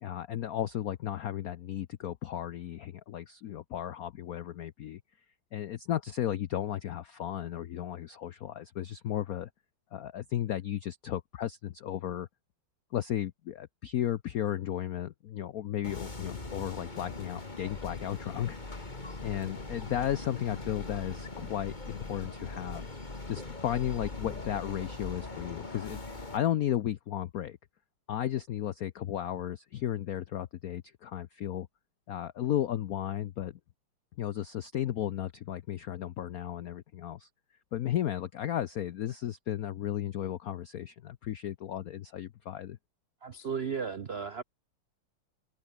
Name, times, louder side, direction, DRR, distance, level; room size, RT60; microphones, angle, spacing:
voice 1, 0.0-5.0 5.5-9.5 9.9-12.3 12.9-18.9 19.2-22.9 23.3-27.6 28.1-31.7 32.1-33.6 34.2-37.3 37.7-42.8, left 11 dB, 80° left, 0.8 m, -34 dB
sound 1, 15.8-26.4, left 2 dB, 20° left, 2.6 m, -41 dB
voice 2, 43.2-44.4, right 6 dB, 80° right, 0.5 m, -35 dB
omnidirectional pair, 2.4 m